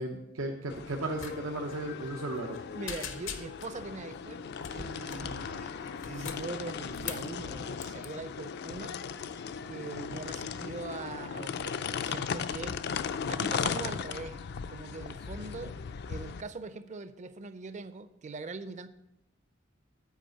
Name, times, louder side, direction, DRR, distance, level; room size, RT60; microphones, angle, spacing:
voice 1, 0.0-2.6, right 1 dB, 85° right, 2 dB, 0.8 m, -35 dB
sound 1, 0.7-16.4, left 6 dB, 55° left, 0.4 m, -37 dB
sound 2, 1.2-1.4 1.6-1.8 2.2-2.6 2.9-3.8 4.6-5.3 5.9-7.3 7.8-8.1, left 7 dB, 75° left, 0.8 m, -41 dB
voice 2, 2.7-9.0 9.7-12.8 13.3-14.4 14.7-15.8 16.1-18.9, right 3 dB, 35° right, 12 dB, 0.5 m, -42 dB
8.2 x 5.0 x 7.5 m, 0.88 s
head